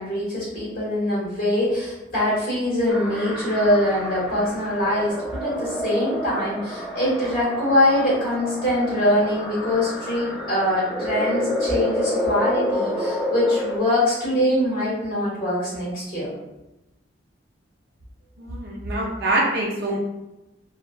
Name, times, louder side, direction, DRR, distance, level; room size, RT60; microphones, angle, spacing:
voice 1, 0.0-5.1 5.4-16.3, left 1 dB, 50° left, -7 dB, 1.5 m, -23 dB
sound 1, 2.9-13.8, equal, ahead, 0.3 m, -29 dB
voice 2, 18.4-20.0, right 2 dB, 60° right, -2 dB, 0.6 m, -24 dB
2.6 x 2.2 x 2.3 m, 0.94 s
head